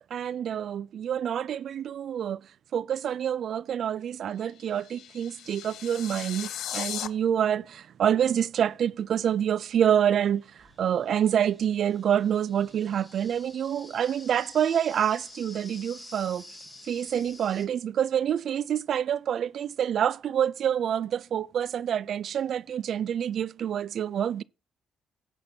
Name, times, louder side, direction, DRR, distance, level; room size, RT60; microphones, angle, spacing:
voice 1, 0.1-2.4 2.7-10.4 10.8-16.4 16.9-24.4, right 9 dB, 65° right, 0.4 m, -27 dB
sound 1, 4.4-7.1, left 11 dB, 75° left, 0.7 m, -37 dB
sound 2, 9.2-9.3 10.2-17.7, left 2 dB, 10° left, 4.6 m, -49 dB
17.5 x 6.0 x 2.7 m
cardioid pair, 90°, 0 cm